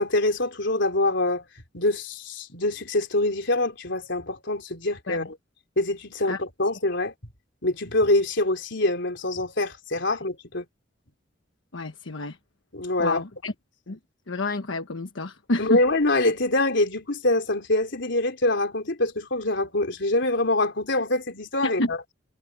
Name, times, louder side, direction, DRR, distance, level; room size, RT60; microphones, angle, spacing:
voice 1, 0.0-1.4 1.7-5.3 5.8-7.1 7.6-10.6 12.7-13.2 15.6-22.0, left 2 dB, 65° left, 4.1 m, -25 dB
voice 2, 11.7-12.4 13.0-13.5 13.9-14.0 14.3-15.8 21.6-21.9, left 2 dB, 80° left, 1.3 m, -29 dB
head